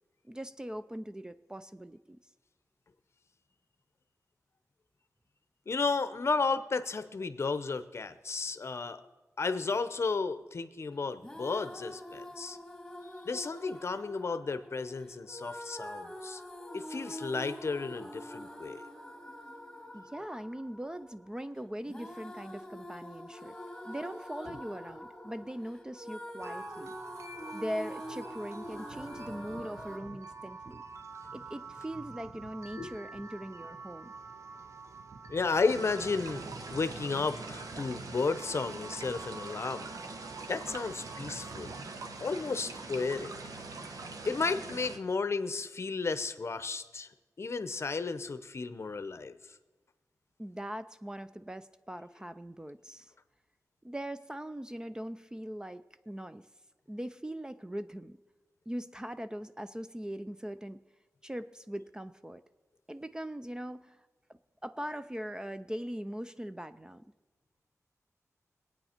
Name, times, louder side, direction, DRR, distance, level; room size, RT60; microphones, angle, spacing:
voice 1, 0.2-2.2 19.9-23.5 23.8-27.0 27.5-30.8 31.3-34.1 50.4-53.1 53.8-56.5 56.9-58.2 58.7-60.8 61.2-62.4 62.9-64.0 64.6-67.0, equal, 15° right, 11 dB, 0.4 m, -41 dB
voice 2, 5.7-9.0 9.4-12.6 13.2-16.4 16.7-18.8 32.8-32.9 35.3-36.4 36.7-39.9 40.5-41.7 42.2-43.3 44.2-47.1 47.4-49.4, left 4 dB, 50° left, 12 dB, 0.7 m, -33 dB
sound 1, 11.2-30.0, equal, 5° left, 1.8 m, -45 dB
sound 2, 26.4-42.0, right 4 dB, 55° right, 0.7 m, -47 dB
sound 3, 35.7-45.0, right 3 dB, 90° right, 1.0 m, -43 dB
23.0 x 8.8 x 4.4 m, 1.2 s
wide cardioid pair, 110°, 6 cm